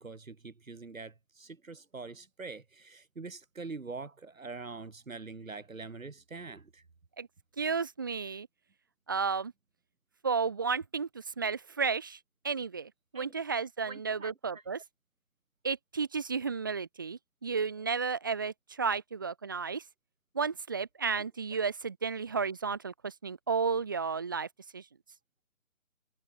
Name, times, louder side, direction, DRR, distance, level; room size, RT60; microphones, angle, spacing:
voice 1, 0.0-6.8 13.1-13.3 13.9-14.6 21.1-21.2, right 4 dB, 70° right, 6.4 m, -44 dB
voice 2, 7.6-8.5 9.1-9.5 10.2-12.2 12.4-14.8 15.6-19.8 20.3-24.5 24.7-24.8, right 5 dB, 15° right, 1.4 m, -32 dB
hypercardioid pair, 175°, 42 cm